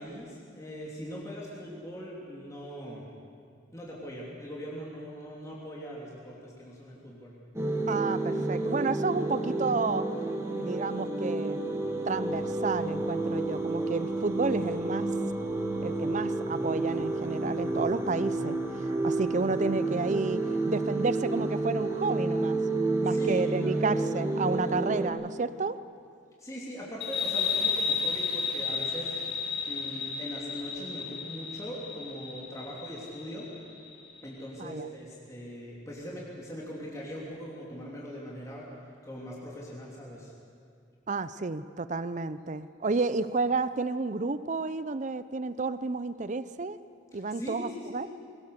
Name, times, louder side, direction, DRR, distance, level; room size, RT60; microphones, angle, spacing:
voice 1, 0.0-3.1 3.7-7.3 23.0-23.8 26.4-29.1 29.6-33.5 34.2-38.7 39.0-40.3 47.1-48.1, equal, 15° left, -5 dB, 3.2 m, -41 dB
sound 1, 7.5-25.1, right 2 dB, 15° right, 2.0 m, -30 dB
voice 2, 7.9-10.1 10.6-11.6 12.1-15.1 15.8-22.6 23.0-25.8 34.6-34.9 41.1-46.8 47.1-48.1, right 3 dB, 40° right, 14 dB, 0.6 m, -31 dB
sound 2, 27.0-34.2, left 5 dB, 55° left, 2.7 m, -33 dB
21.5 x 19.5 x 6.7 m, 2.4 s
head